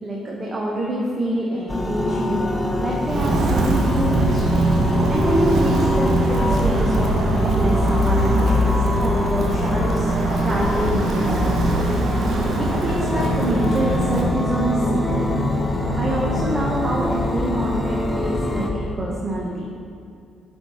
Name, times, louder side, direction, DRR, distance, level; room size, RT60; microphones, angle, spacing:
voice 1, 0.0-2.4 2.8-4.5 5.1-11.5 12.6-15.3 16.0-19.6, right 1 dB, 30° right, -3 dB, 1.0 m, -26 dB
sound 1, 1.7-18.7, left 1 dB, 10° left, 0.9 m, -24 dB
Walk footsteps, 3.1-14.3, right 1 dB, 55° right, 0.6 m, -22 dB
sound 2, 12.9-18.6 18.9-19.0, left 2 dB, 55° left, 0.4 m, -30 dB
8.9 x 4.4 x 3.0 m, 2.5 s
figure-of-eight pair, 45°, 0 cm